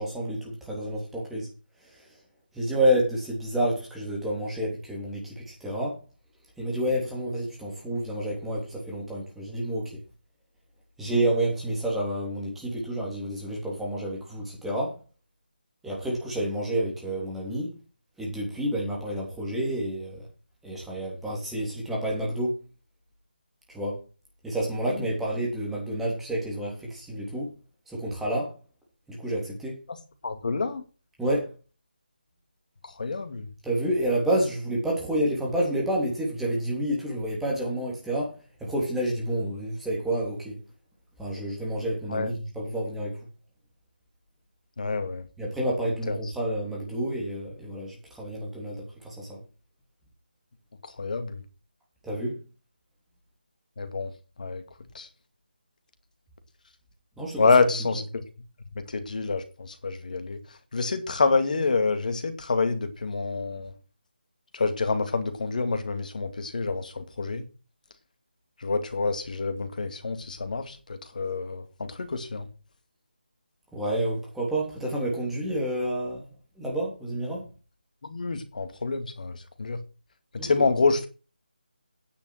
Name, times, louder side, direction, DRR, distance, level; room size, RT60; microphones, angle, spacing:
voice 1, 0.0-1.5 2.5-6.0 6.6-9.9 11.0-15.0 15.8-17.7 18.2-20.3 20.6-22.5 23.7-24.0 24.4-27.5 27.9-28.5 29.1-29.8 31.2-31.5 33.6-38.3 38.6-40.6 41.2-43.1 45.4-49.4 52.0-52.4 57.2-57.5 73.7-76.2 76.6-77.4 80.4-80.7, right 1 dB, 5° right, -3 dB, 3.2 m, -29 dB
voice 2, 30.2-30.8 32.8-33.5 42.1-42.3 44.8-45.2 46.1-46.2 50.8-51.4 53.8-54.1 54.4-54.6 54.9-55.1 57.4-58.2 58.9-60.4 60.7-63.7 64.5-67.4 68.6-72.5 78.0-79.8 80.3-81.1, left 4 dB, 55° left, 9 dB, 2.3 m, -27 dB
9.8 x 7.0 x 6.5 m, 0.33 s
figure-of-eight pair, 160°, 5 cm